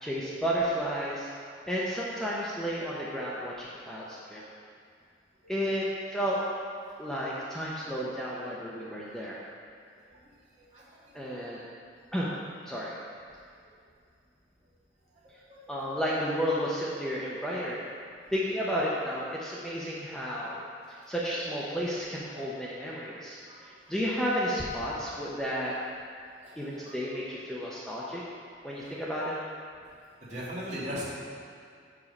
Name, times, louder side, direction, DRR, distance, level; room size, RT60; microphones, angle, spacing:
voice 1, 0.0-1.3 1.7-4.5 5.5-6.4 7.0-9.4 11.1-11.7 12.1-12.3 12.6-13.0 15.7-17.8 18.3-20.6 21.1-25.7 26.6-28.2 28.6-29.4, equal, 5° left, -7 dB, 0.7 m, -32 dB
voice 2, 30.3-31.0, equal, 40° right, -8 dB, 2.0 m, -37 dB
7.1 x 4.9 x 5.3 m, 2.3 s
head